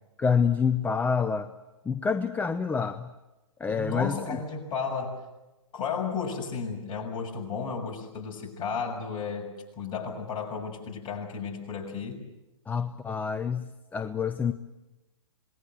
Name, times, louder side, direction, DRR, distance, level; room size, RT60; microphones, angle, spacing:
voice 1, 0.2-1.5 1.9-3.1 3.6-4.2 12.7-14.5, left 6 dB, 10° left, 10 dB, 0.8 m, -27 dB
voice 2, 3.7-5.2 5.7-12.2, left 5 dB, 30° left, 0 dB, 6.8 m, -33 dB
27.0 x 20.5 x 8.0 m, 1.0 s
figure-of-eight pair, 120°, 17 cm